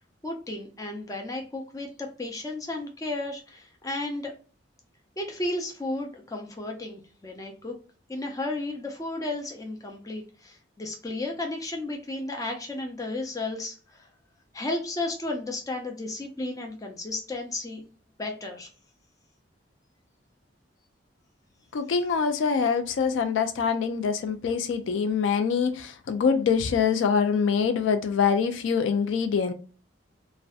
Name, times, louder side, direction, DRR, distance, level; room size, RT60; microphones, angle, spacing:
voice 1, 0.2-4.3 5.2-7.8 8.1-14.1 14.5-17.8 18.2-18.7, left 2 dB, 20° left, 0.5 m, -33 dB
voice 2, 21.7-29.5, left 6 dB, 75° left, 0.3 m, -24 dB
2.5 x 2.1 x 2.3 m
head